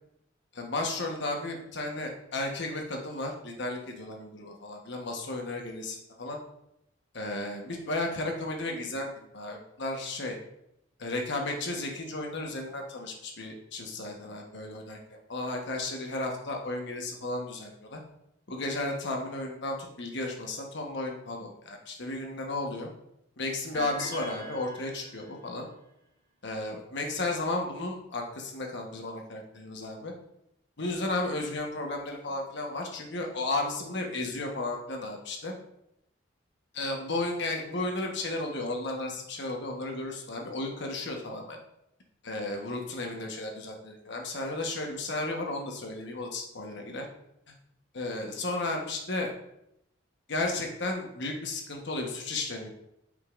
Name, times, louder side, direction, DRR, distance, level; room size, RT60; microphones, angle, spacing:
voice 1, 0.5-6.4 7.1-9.1 9.3-10.4 11.0-15.0 15.3-18.0 18.5-22.9 23.4-25.7 26.4-30.1 30.8-35.5 36.7-41.6 42.2-47.1 47.9-49.3 50.3-52.7, left 2 dB, 65° left, 2 dB, 1.2 m, -34 dB
sound 1, 23.7-25.5, right 2 dB, 15° left, 2.6 m, -42 dB
8.2 x 5.2 x 2.5 m, 0.80 s
head